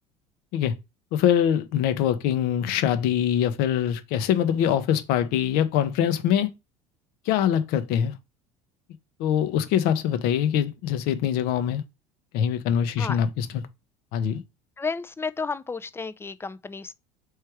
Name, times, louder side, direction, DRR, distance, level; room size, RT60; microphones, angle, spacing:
voice 1, 1.1-6.5 7.3-8.1 9.2-11.8 12.3-13.6 14.1-14.4, left 9 dB, 65° left, 0.8 m, -23 dB
voice 2, 14.8-16.9, left 4 dB, 15° left, 0.4 m, -32 dB
3.3 x 3.2 x 4.6 m
hypercardioid pair, 75°, 17 cm